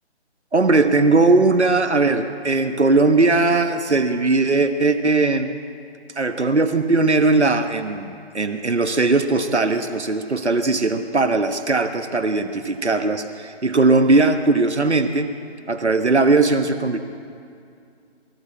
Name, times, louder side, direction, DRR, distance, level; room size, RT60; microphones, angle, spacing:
voice 1, 0.5-5.5 6.2-15.3 15.7-17.0, right 3 dB, 75° right, 8 dB, 1.3 m, -19 dB
22.5 x 14.5 x 8.4 m, 2.4 s
figure-of-eight pair, 150°, 34 cm